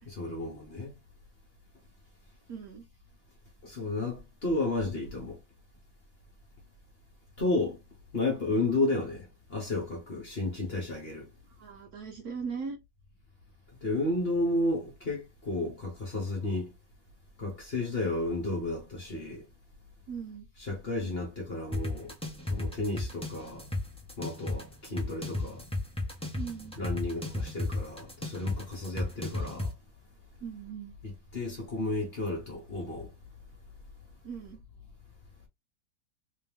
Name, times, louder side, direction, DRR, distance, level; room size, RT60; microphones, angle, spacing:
voice 1, 0.1-0.9 3.6-5.4 7.4-7.8 8.1-11.3 13.8-16.7 17.4-19.4 20.6-22.1 22.5-23.6 24.2-25.6 26.8-29.7 31.0-33.1, left 2 dB, 35° left, 1.2 m, -32 dB
voice 2, 2.5-2.8 11.6-12.8 20.1-20.5 26.4-26.8 30.4-30.9 34.2-34.6, right 6 dB, 60° right, 1.1 m, -39 dB
sound 1, 21.7-29.7, left 2 dB, 5° left, 0.5 m, -34 dB
3.5 x 3.0 x 3.4 m
omnidirectional pair, 2.1 m